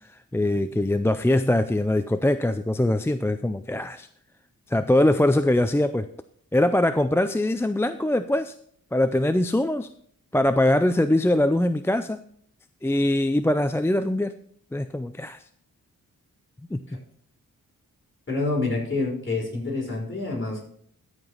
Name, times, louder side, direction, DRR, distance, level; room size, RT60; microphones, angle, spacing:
voice 1, 0.3-4.1 4.7-6.1 6.5-8.5 8.9-9.9 10.3-12.2 12.8-14.3 14.7-15.4 16.7-17.0, left 1 dB, 10° left, 10 dB, 0.4 m, -22 dB
voice 2, 18.3-20.6, left 3 dB, 35° left, -3 dB, 4.9 m, -27 dB
14.0 x 4.9 x 5.5 m, 0.62 s
cardioid pair, 80°, 33 cm